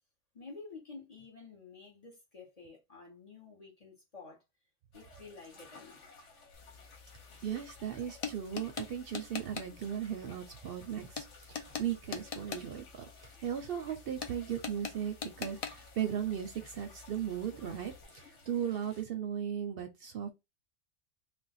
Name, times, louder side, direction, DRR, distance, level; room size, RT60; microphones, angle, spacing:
voice 1, 0.3-4.4 4.9-6.1, left 4 dB, 35° left, 0.8 m, -51 dB
sound 1, 4.9-19.0, left 3 dB, 80° left, 1.2 m, -57 dB
sound 2, 6.5-18.0, left 6 dB, 55° left, 0.4 m, -45 dB
voice 2, 7.4-20.3, right 9 dB, 65° right, 0.7 m, -37 dB
2.4 x 2.1 x 4.0 m
omnidirectional pair, 1.2 m